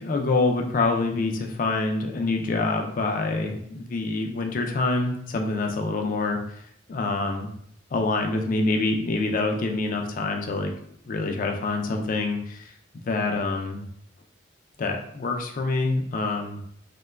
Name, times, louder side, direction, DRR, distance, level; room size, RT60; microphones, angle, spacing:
voice 1, 0.0-6.6 6.9-7.5 7.9-10.7 11.1-13.9 14.8-16.6, left 3 dB, 45° left, 3 dB, 0.3 m, -26 dB
2.9 x 2.2 x 2.2 m, 0.68 s
head